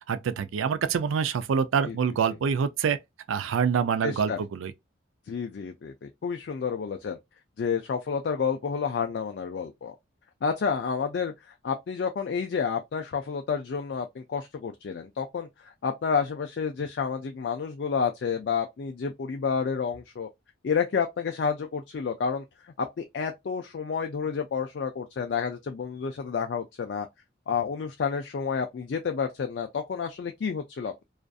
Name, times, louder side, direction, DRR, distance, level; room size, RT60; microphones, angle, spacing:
voice 1, 0.1-3.0 3.3-4.7, right 6 dB, 90° right, 0.4 m, -26 dB
voice 2, 4.0-4.4 5.3-7.2 7.6-10.0 10.4-11.3 11.6-20.3 20.6-27.1 27.5-31.0, left 6 dB, 55° left, 0.3 m, -30 dB
2.5 x 2.4 x 2.3 m
head